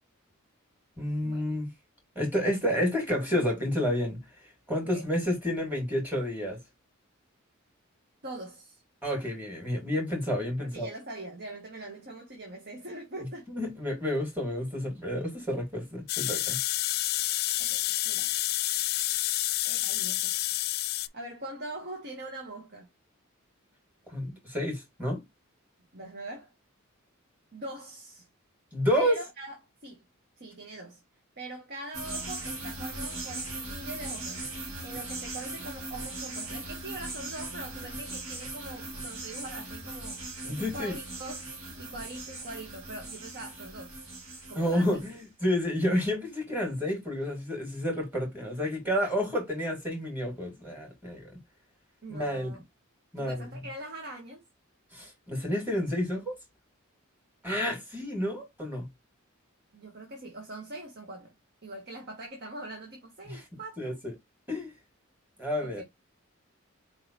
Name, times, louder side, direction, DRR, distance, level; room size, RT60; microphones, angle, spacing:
voice 1, 1.0-1.7 2.2-4.2 4.7-6.6 9.0-10.9 13.5-16.6 24.1-25.2 28.7-29.2 40.4-40.9 44.6-51.3 52.1-52.6 53.1-53.4 54.9-56.4 57.4-58.9 63.3-63.4 63.8-63.9 64.5-64.7 65.4-65.8, equal, 10° right, 2.1 m, -30 dB
voice 2, 8.2-8.8 10.6-13.5 17.6-18.3 19.6-20.7 21.1-22.9 25.9-26.5 27.5-28.3 28.9-29.6 29.8-30.0 30.4-31.0 31.4-34.4 34.8-41.5 41.8-43.9 44.5-45.0 52.0-52.6 53.2-54.4 59.7-61.3 61.6-64.0 65.6-65.8, right 1 dB, 50° right, 1.3 m, -42 dB
sound 1, 16.1-21.1, left 16 dB, 50° left, 0.3 m, -29 dB
sound 2, 31.9-45.2, right 2 dB, 70° right, 2.1 m, -39 dB
4.6 x 3.7 x 2.8 m
head